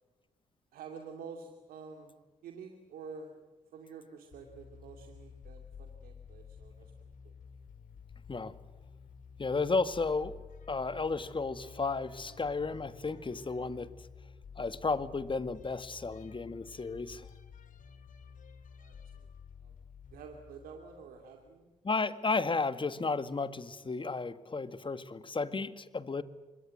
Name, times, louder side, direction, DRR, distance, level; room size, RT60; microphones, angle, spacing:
voice 1, 0.7-2.1 2.4-3.3 3.7-6.9 7.2-7.4 18.8-19.3 19.6-19.7 20.1-21.7, right 5 dB, 85° right, 3 dB, 2.6 m, -48 dB
sound 1, 4.3-21.6, left 6 dB, 65° left, 2.4 m, -52 dB
voice 2, 9.4-10.4 10.7-13.9 14.6-17.3 21.8-26.2, left 4 dB, 35° left, 13 dB, 1.9 m, -33 dB
26.5 x 22.0 x 7.8 m, 1.2 s
supercardioid pair, 50°, 15 cm